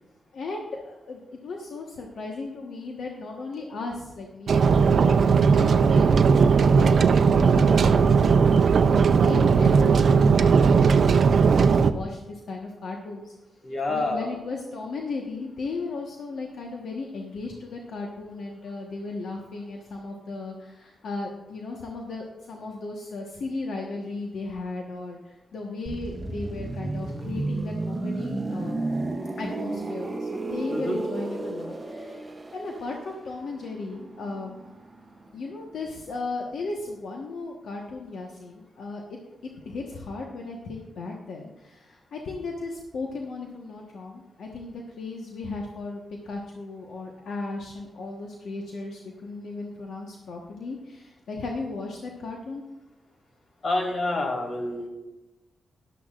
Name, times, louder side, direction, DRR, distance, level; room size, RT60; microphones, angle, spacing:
voice 1, 0.3-13.3 13.9-28.8 29.4-34.5 35.3-39.0 39.4-52.6, left 3 dB, 80° left, 0 dB, 1.2 m, -36 dB
sound 1, 4.5-11.9, right 5 dB, 60° right, 0.5 m, -18 dB
voice 2, 13.6-14.3 30.7-31.0 53.6-54.9, left 2 dB, 55° left, 2 dB, 2.6 m, -28 dB
sound 2, 25.9-35.5 35.8-36.0, right 2 dB, 25° right, 0.9 m, -33 dB
14.0 x 11.5 x 2.5 m, 1.1 s
cardioid pair, 105°, 0 cm